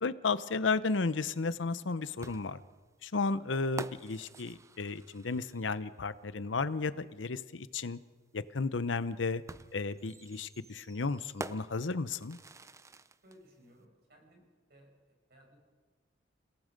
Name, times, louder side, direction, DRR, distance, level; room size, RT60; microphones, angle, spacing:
voice 1, 0.0-2.6 3.0-8.0 8.3-9.4 9.7-12.4, left 4 dB, 90° left, 14 dB, 0.8 m, -33 dB
sound 1, 2.2-5.9 7.3-7.4 9.5-13.4, right 3 dB, 15° right, 0.5 m, -47 dB
voice 2, 13.2-14.9 15.3-15.6, equal, 60° right, 0 dB, 7.2 m, -60 dB
28.5 x 18.0 x 5.2 m, 1.4 s
head